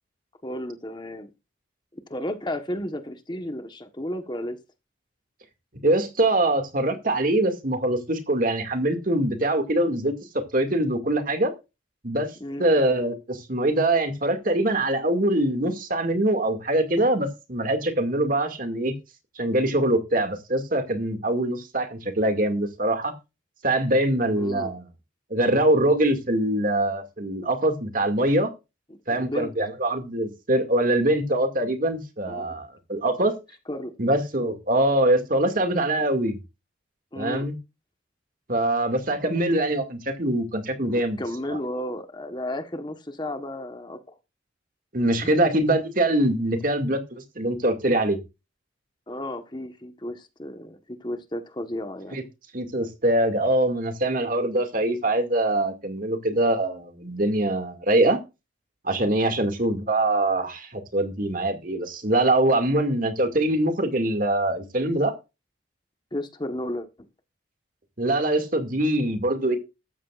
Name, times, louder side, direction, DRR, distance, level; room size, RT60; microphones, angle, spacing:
voice 1, 0.4-1.3 1.9-4.6 12.4-12.7 24.4-24.7 28.9-29.5 32.3-32.6 33.7-33.9 37.1-37.5 39.2-39.4 40.9-44.2 45.2-45.3 49.1-52.2 66.1-66.9, left 1 dB, 25° left, 1.3 m, -33 dB
voice 2, 5.8-11.5 12.0-18.9 19.4-23.1 23.6-24.8 25.3-28.5 29.1-33.4 34.0-36.4 37.2-37.6 38.5-41.2 41.5-41.6 44.9-48.2 52.1-52.2 52.5-58.2 58.8-65.1 68.0-69.6, right 1 dB, 45° right, 2.3 m, -23 dB
15.0 x 13.5 x 2.5 m
head